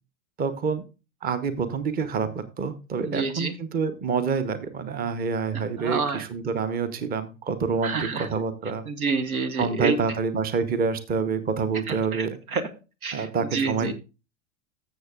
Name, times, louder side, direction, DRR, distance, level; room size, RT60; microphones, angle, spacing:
voice 1, 0.4-0.8 1.2-8.9 9.6-12.4 13.1-13.9, right 5 dB, 20° right, 12 dB, 0.9 m, -27 dB
voice 2, 3.0-3.5 5.8-6.2 7.8-8.3 8.9-10.0 11.9-12.3 12.5-12.6 13.0-13.3 13.5-13.9, right 4 dB, 80° right, 12 dB, 1.2 m, -27 dB
14.5 x 6.8 x 2.4 m, 0.30 s
figure-of-eight pair, 90°, 42 cm